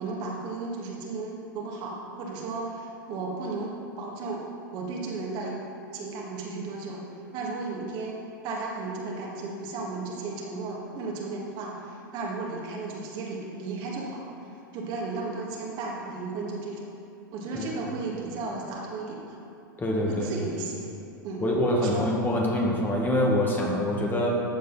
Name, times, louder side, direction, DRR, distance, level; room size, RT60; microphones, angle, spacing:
voice 1, 0.0-4.4 4.7-5.6 5.9-7.0 7.3-14.5 14.7-16.9 17.3-19.4 20.1-20.9 21.2-21.4 21.8-22.0, right 3 dB, 40° right, -2 dB, 2.2 m, -34 dB
voice 2, 19.8-20.3 21.4-24.3, left 1 dB, 15° left, -1 dB, 1.8 m, -25 dB
14.0 x 7.6 x 4.2 m, 2.6 s
figure-of-eight pair, 90°, 11 cm